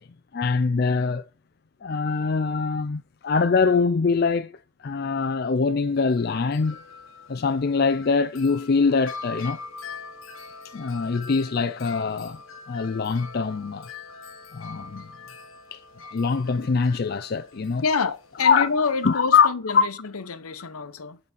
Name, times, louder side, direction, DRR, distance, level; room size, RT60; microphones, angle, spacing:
voice 1, 0.3-1.2 1.8-4.5 4.8-6.8 7.3-9.6 10.7-12.4 12.7-13.9 14.5-15.1 15.7-15.8 16.1-17.8 18.4-18.7 19.0-19.5 19.7-19.8, left 5 dB, 45° left, 0.4 m, -23 dB
Wind chime, 5.9-19.2, left 4 dB, 65° left, 1.1 m, -43 dB
voice 2, 17.8-21.2, left 5 dB, 90° left, 0.9 m, -27 dB
10.5 x 4.1 x 5.8 m
head